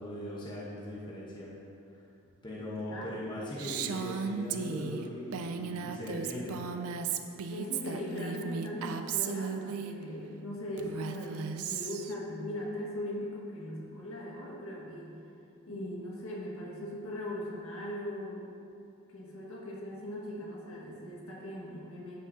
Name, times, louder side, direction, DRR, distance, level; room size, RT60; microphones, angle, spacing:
voice 1, 0.0-1.5 1.9-2.0 2.4-6.6, left 1 dB, 20° left, -6 dB, 1.1 m, -40 dB
voice 2, 2.8-3.2 3.5-3.7 7.5-15.2 15.7-18.5 19.1-22.2, left 1 dB, 70° left, -4 dB, 1.7 m, -39 dB
Female speech woman speaking, 3.6-9.9 10.8-12.1, right 6 dB, 80° right, 0.4 m, -35 dB
13.0 x 5.9 x 2.8 m, 2.6 s
head